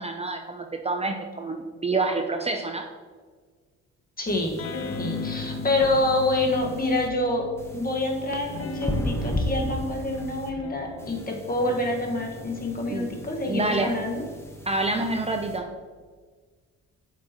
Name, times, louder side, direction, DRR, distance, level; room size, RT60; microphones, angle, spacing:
voice 1, 0.0-2.9 12.9-13.1 13.5-14.0 14.7-15.7, right 2 dB, 20° right, 3 dB, 0.6 m, -27 dB
voice 2, 4.2-4.7 5.0-7.5 7.7-14.2, left 2 dB, 30° left, 1 dB, 1.6 m, -27 dB
sound 1, 4.3-7.1 7.6-10.5 11.0-15.6, equal, 10° left, 1.1 m, -36 dB
sound 2, 4.6-8.0 8.5-15.3, left 3 dB, 50° left, 0.9 m, -38 dB
8.2 x 6.2 x 3.0 m, 1.5 s
cardioid pair, 90°, 30 cm